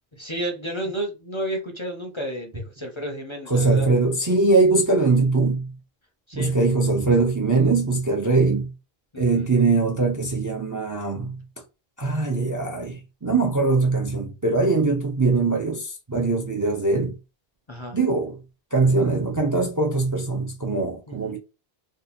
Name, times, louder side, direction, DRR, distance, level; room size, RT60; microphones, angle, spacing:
voice 1, 0.2-3.9 6.3-6.5 9.1-9.5 17.7-18.0 21.1-21.4, right 1 dB, 35° left, 0.6 m, -31 dB
voice 2, 3.5-5.7 6.3-8.7 9.2-11.4 12.0-17.2 17.9-18.4 18.7-21.4, right 3 dB, 25° right, 0.5 m, -21 dB
2.7 x 2.4 x 4.1 m
omnidirectional pair, 1.1 m